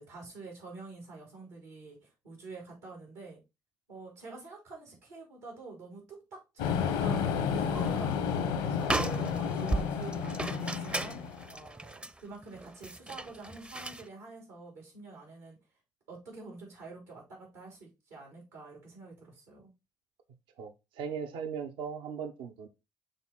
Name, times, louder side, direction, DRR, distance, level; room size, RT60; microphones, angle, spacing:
voice 1, 0.0-3.4 3.9-11.2 11.5-15.6 16.1-19.7, right 3 dB, 90° right, 3.3 m, -47 dB
sound 1, 6.6-11.5, left 7 dB, 85° left, 1.0 m, -31 dB
sound 2, 7.5-8.0 8.3-8.4 8.8-14.1, right 2 dB, 10° right, 0.5 m, -36 dB
voice 2, 20.6-22.7, right 6 dB, 75° right, 0.8 m, -38 dB
6.9 x 3.7 x 3.9 m
hypercardioid pair, 50°, 9 cm